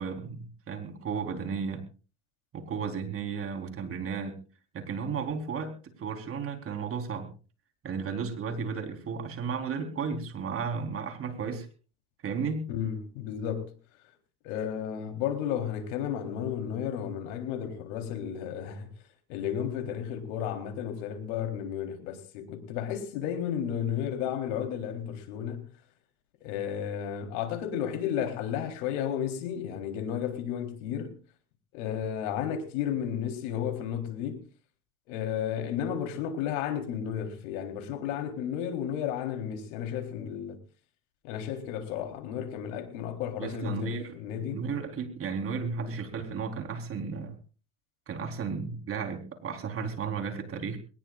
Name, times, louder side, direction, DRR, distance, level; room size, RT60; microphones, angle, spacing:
voice 1, 0.0-1.8 2.5-4.4 4.7-7.3 7.8-11.7 12.2-12.7 43.4-47.4 48.1-50.8, right 5 dB, 35° right, 4.2 m, -34 dB
voice 2, 12.7-13.7 14.4-18.9 19.3-25.7 26.4-31.2 31.7-34.4 35.1-40.6 41.2-44.6, left 9 dB, 75° left, 3.8 m, -33 dB
22.0 x 19.5 x 2.5 m
supercardioid pair, 110°, 37 cm